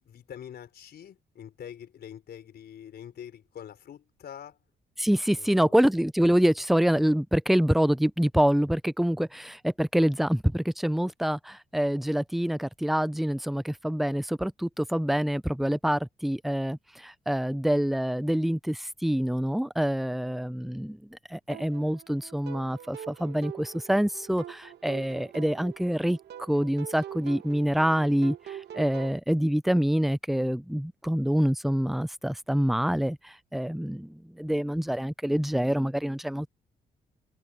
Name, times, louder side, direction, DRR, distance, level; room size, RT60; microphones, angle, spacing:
voice 1, 0.0-4.6 5.4-5.8, left 9 dB, 70° left, 4.8 m, -45 dB
voice 2, 5.0-26.2 26.5-36.5, equal, ahead, 0.5 m, -26 dB
sound 1, 21.5-29.2, right 10 dB, 75° right, 1.9 m, -44 dB
cardioid pair, 85°, 17 cm